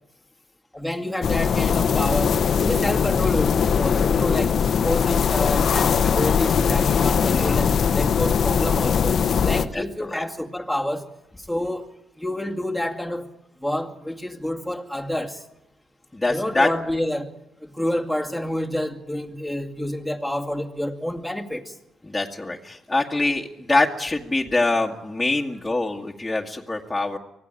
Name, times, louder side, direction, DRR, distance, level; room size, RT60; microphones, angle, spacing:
voice 1, 0.7-11.1 11.4-11.9 12.2-13.3 13.6-15.4 16.3-17.3 17.6-21.8, left 1 dB, 5° right, 2.4 m, -28 dB
sound 1, 1.2-9.7, left 7 dB, 55° left, 1.1 m, -20 dB
voice 2, 7.3-7.7 9.7-10.2 16.1-16.7 22.1-27.2, left 2 dB, 10° left, 2.0 m, -24 dB
25.0 x 17.0 x 9.0 m
cardioid pair, 90°, 0 cm